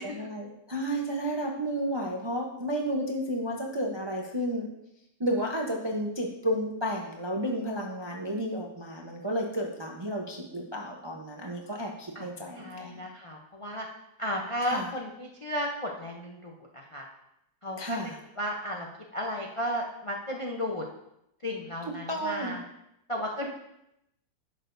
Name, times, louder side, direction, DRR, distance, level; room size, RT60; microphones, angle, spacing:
voice 1, 0.0-4.7 5.2-13.0 14.6-14.9 17.8-18.2 22.1-22.6, equal, 35° right, -1 dB, 0.4 m, -32 dB
voice 2, 12.5-13.9 14.2-17.1 17.6-18.0 18.4-20.9 21.4-22.6 23.1-23.5, equal, 45° left, -1 dB, 0.4 m, -34 dB
10.5 x 6.6 x 2.6 m, 0.82 s
omnidirectional pair, 1.8 m